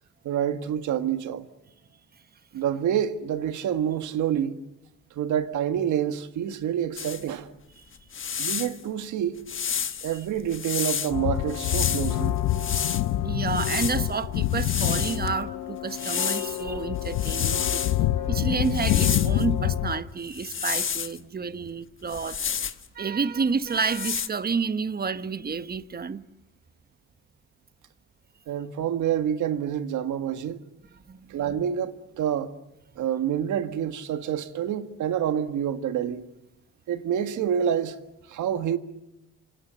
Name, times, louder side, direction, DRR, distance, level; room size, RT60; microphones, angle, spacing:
voice 1, 0.2-1.5 2.5-4.5 5.2-7.5 8.4-9.4 10.0-12.4 28.5-30.6 31.3-32.5 33.0-36.2 36.9-38.0 38.3-38.8, right 9 dB, 75° right, 1.8 m, -27 dB
sound 1, 7.0-7.2 7.9-8.8 9.5-11.1 11.5-13.0 13.5-15.3 15.9-16.6 17.0-18.0 18.6-19.4 20.3-21.2 22.1-22.9 23.6-24.3, left 7 dB, 40° left, 1.3 m, -30 dB
sound 2, 11.1-20.0, left 13 dB, 85° left, 0.9 m, -26 dB
voice 2, 13.2-17.8 18.2-22.7 22.9-26.2 31.1-31.3, right 5 dB, 30° right, 1.1 m, -30 dB
29.0 x 26.0 x 7.0 m
cardioid pair, 90°, 30 cm